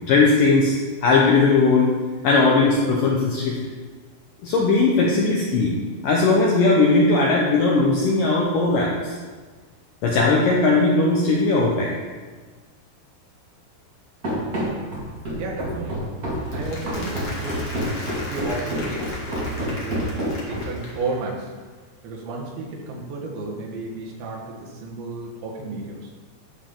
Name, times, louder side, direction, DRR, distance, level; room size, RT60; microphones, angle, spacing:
voice 1, 0.1-1.9 2.2-3.6 4.4-5.7 6.0-9.2 10.0-11.9, left 3 dB, 75° left, -3 dB, 2.0 m, -18 dB
Run, 14.2-20.9, equal, 40° right, 1.3 m, -28 dB
voice 2, 15.4-16.0 16.5-17.6 18.3-20.1 20.5-21.5 22.0-26.1, right 3 dB, 90° right, -2 dB, 3.9 m, -32 dB
Applause, 16.4-21.4, left 1 dB, 50° left, 1.3 m, -37 dB
12.0 x 7.0 x 3.8 m, 1.4 s
omnidirectional pair, 5.0 m